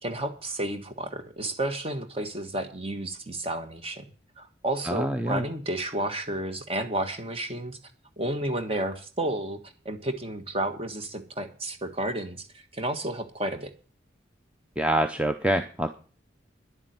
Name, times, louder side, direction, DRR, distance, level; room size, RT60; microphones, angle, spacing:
voice 1, 0.0-4.0 4.4-7.8 8.2-13.7, right 1 dB, 30° right, 7 dB, 1.5 m, -31 dB
voice 2, 4.8-5.4 14.8-15.9, right 1 dB, 5° right, 7 dB, 0.6 m, -26 dB
11.0 x 7.3 x 9.4 m, 0.39 s
head